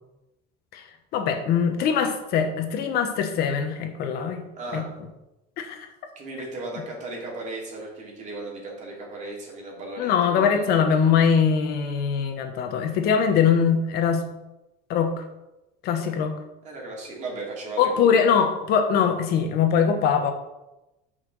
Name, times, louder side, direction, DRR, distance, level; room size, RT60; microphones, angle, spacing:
voice 1, 1.1-4.4 4.7-4.8 5.6-5.9 10.0-14.2 14.9-15.1 15.8-16.4 17.8-20.3, left 7 dB, 55° left, 5 dB, 1.3 m, -22 dB
voice 2, 4.5-4.9 6.1-10.7 16.0-16.1 16.6-18.4, right 2 dB, 40° right, -2 dB, 3.1 m, -36 dB
7.8 x 5.9 x 6.2 m, 0.96 s
cardioid pair, 145°, 19 cm